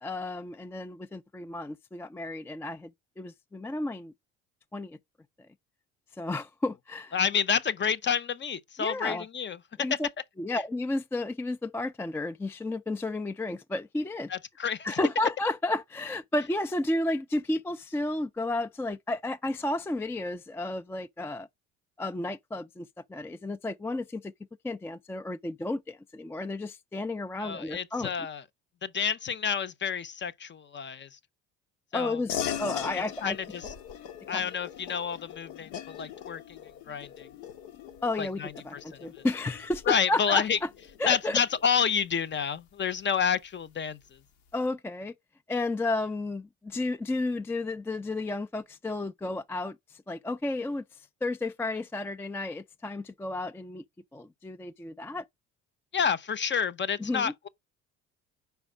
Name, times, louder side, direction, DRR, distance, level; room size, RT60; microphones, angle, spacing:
voice 1, 0.0-2.9 3.2-4.1 4.7-5.0 6.2-7.2 8.8-9.2 9.8-10.1 10.4-14.3 14.8-21.5 22.0-24.3 24.6-28.1 31.9-33.4 34.3-34.5 38.0-40.7 41.0-41.4 44.5-45.1 45.5-50.8 51.2-53.8 54.1-55.3 57.0-57.3, left 2 dB, 5° left, 0.3 m, -32 dB
voice 2, 7.1-9.6 9.9-10.0 14.3-14.9 27.4-28.4 28.8-31.2 31.9-32.2 32.9-33.7 34.3-36.6 36.9-37.3 38.2-39.2 39.9-40.6 41.1-44.2 55.9-57.5, left 7 dB, 30° left, 0.7 m, -29 dB
sound 1, 32.3-42.2, left 9 dB, 80° left, 1.0 m, -40 dB
4.9 x 4.5 x 4.9 m
hypercardioid pair, 65°, 35 cm